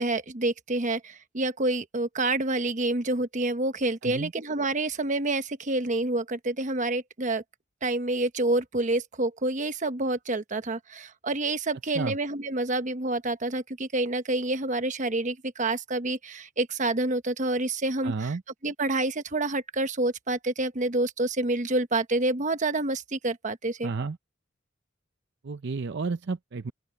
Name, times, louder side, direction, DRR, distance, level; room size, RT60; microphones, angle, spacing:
voice 1, 0.0-7.4 7.8-18.3 18.6-23.9, right 2 dB, 40° right, 1.1 m, -28 dB
voice 2, 18.0-18.4 23.8-24.2 25.4-26.7, right 4 dB, 60° right, 0.6 m, -31 dB
open air
head